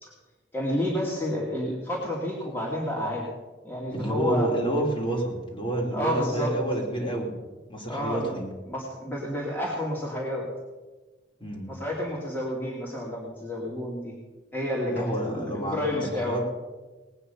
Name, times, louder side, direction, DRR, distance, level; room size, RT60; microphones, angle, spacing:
voice 1, 0.5-3.3 3.6-4.5 5.9-6.5 7.8-8.3 8.7-10.5 11.7-14.1 14.5-16.4, left 1 dB, 10° left, -5 dB, 2.6 m, -30 dB
voice 2, 3.9-7.3 7.7-8.5 11.4-11.7 14.9-16.4, right 1 dB, 25° left, -2 dB, 3.4 m, -29 dB
19.5 x 9.2 x 5.6 m, 1.2 s
head